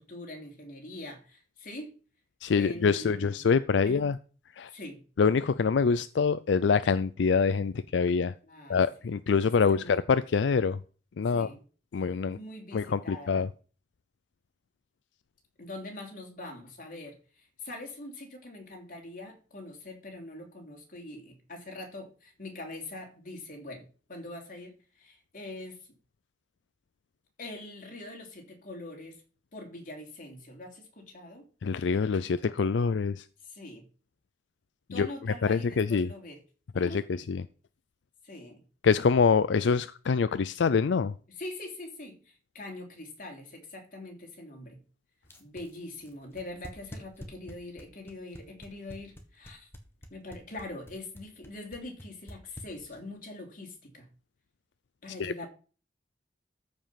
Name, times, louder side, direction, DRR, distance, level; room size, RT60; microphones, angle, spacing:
voice 1, 0.0-1.9 2.5-3.5 3.8-4.1 4.6-5.0 8.4-8.8 9.6-10.0 11.3-11.6 12.3-13.4 15.6-23.8 24.1-25.9 27.4-29.2 29.5-31.5 33.4-33.9 34.9-36.4 36.7-37.2 38.2-38.6 41.3-44.8 45.4-49.7 50.1-54.1 55.0-55.5, left 2 dB, 45° left, 3.1 m, -43 dB
voice 2, 2.4-4.2 4.6-4.7 5.2-8.3 8.7-10.8 11.2-11.5 11.9-12.4 12.7-13.5 31.6-33.2 34.9-35.1 35.4-36.1 36.8-37.0 37.3-37.4 38.8-41.1 55.2-55.3, left 5 dB, 80° left, 0.4 m, -25 dB
sound 1, 45.2-53.2, equal, 15° left, 1.6 m, -46 dB
14.0 x 5.3 x 5.7 m
head